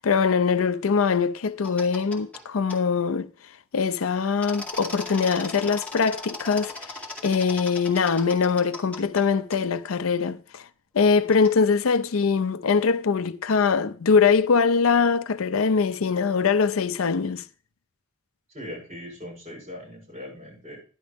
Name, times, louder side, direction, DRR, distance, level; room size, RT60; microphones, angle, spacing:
voice 1, 0.0-3.3 3.7-6.9 7.2-10.6 10.9-17.4, left 5 dB, 80° left, 0.5 m, -22 dB
sound 1, 1.6-2.4 2.7-2.8 4.4-9.2 9.5-9.6 11.3-11.6, left 2 dB, 5° left, 2.1 m, -38 dB
voice 2, 18.5-20.8, left 1 dB, 30° right, 7.5 m, -40 dB
11.5 x 11.0 x 3.5 m
head